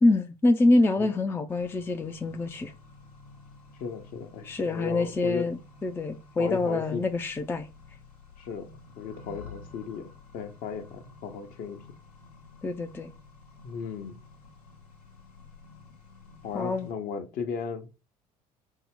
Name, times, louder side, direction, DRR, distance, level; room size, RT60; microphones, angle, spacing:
voice 1, 0.0-2.7 4.4-7.7 12.6-13.1 16.5-16.9, left 2 dB, 10° left, 0.4 m, -25 dB
Accelerating revving vroom, 1.5-16.9, left 3 dB, 75° left, 0.9 m, -51 dB
voice 2, 3.8-5.4 6.4-7.0 8.4-8.7 9.0-11.8 13.6-14.2 16.4-17.9, left 6 dB, 45° left, 0.7 m, -35 dB
5.3 x 2.1 x 3.5 m
figure-of-eight pair, 60°, 20 cm